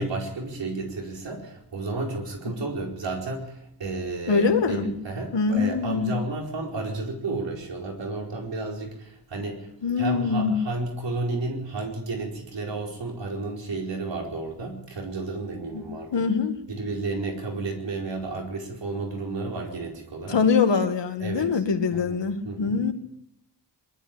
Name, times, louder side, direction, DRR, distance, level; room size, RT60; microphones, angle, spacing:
voice 1, 0.0-3.5 3.8-9.7 10.0-16.2 16.7-20.4 21.2-21.5 21.9-22.1 22.4-22.7, right 3 dB, 85° right, 0 dB, 4.8 m, -32 dB
voice 2, 4.3-4.9 5.3-6.1 9.8-10.5 15.7-15.8 16.1-16.6 20.3-22.9, left 5 dB, 80° left, 6 dB, 2.2 m, -23 dB
23.0 x 13.0 x 8.8 m, 0.78 s
wide cardioid pair, 150°, 42 cm